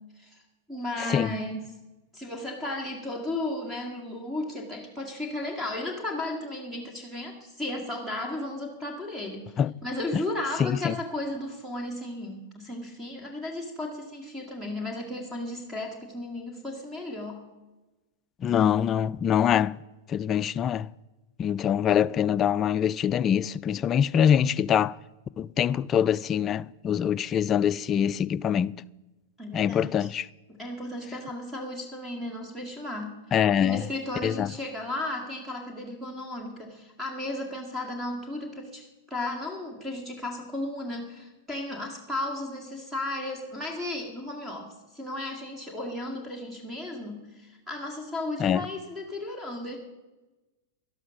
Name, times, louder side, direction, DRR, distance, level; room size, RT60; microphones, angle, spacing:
voice 1, 0.7-1.6 2.1-9.5 9.8-17.4 29.4-30.1 30.5-33.2 33.6-49.8, left 1 dB, 10° right, 2.0 m, -34 dB
voice 2, 10.6-11.0 18.4-19.8 20.1-20.9 21.4-24.9 25.4-28.7 29.5-30.3 33.3-33.8 34.2-34.5 48.4-48.6, left 9 dB, 30° left, 0.3 m, -24 dB
12.0 x 11.5 x 6.2 m
hypercardioid pair, 120°, 0 cm